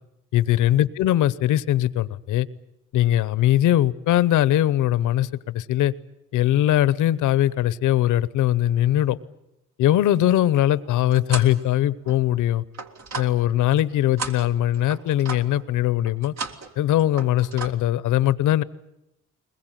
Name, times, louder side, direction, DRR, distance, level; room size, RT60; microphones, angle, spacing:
voice 1, 0.3-2.5 2.9-5.9 6.3-9.2 9.8-12.6 13.2-16.3 16.8-18.6, left 13 dB, 80° left, 18 dB, 0.9 m, -21 dB
sound 1, 10.6-11.6 12.0-13.8 14.2-15.6 16.1-16.7 17.0-17.7, right 4 dB, 60° right, 2.1 m, -35 dB
21.5 x 21.0 x 9.2 m, 0.88 s
cardioid pair, 90°, 30 cm